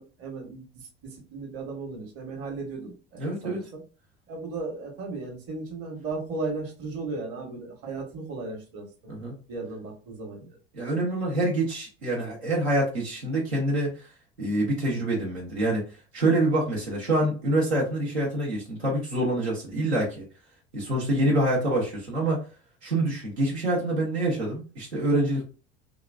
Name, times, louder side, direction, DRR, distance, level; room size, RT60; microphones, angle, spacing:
voice 1, 0.0-3.8 4.3-8.8 9.5-10.6, right 3 dB, 50° right, 1 dB, 1.2 m, -36 dB
voice 2, 3.2-3.6 9.1-9.3 10.7-14.1 14.4-15.8 16.1-20.2 20.7-22.4 22.8-25.4, right 1 dB, 90° right, -3 dB, 1.0 m, -26 dB
2.9 x 2.4 x 2.3 m, 0.35 s
hypercardioid pair, 65°, 32 cm